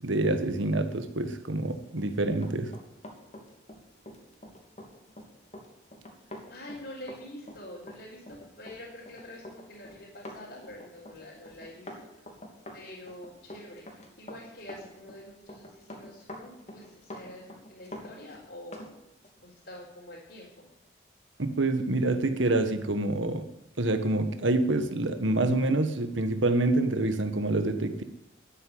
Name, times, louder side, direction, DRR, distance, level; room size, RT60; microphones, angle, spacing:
voice 1, 0.0-2.7 21.4-23.4 23.8-28.0, right 2 dB, 80° right, 9 dB, 1.5 m, -27 dB
Run, 1.9-18.9 19.2-19.4, left 1 dB, 35° left, 2.8 m, -46 dB
voice 2, 6.5-12.3 12.7-18.9 19.4-20.7, left 1 dB, 55° left, -6 dB, 4.1 m, -46 dB
12.5 x 9.8 x 9.6 m, 0.84 s
head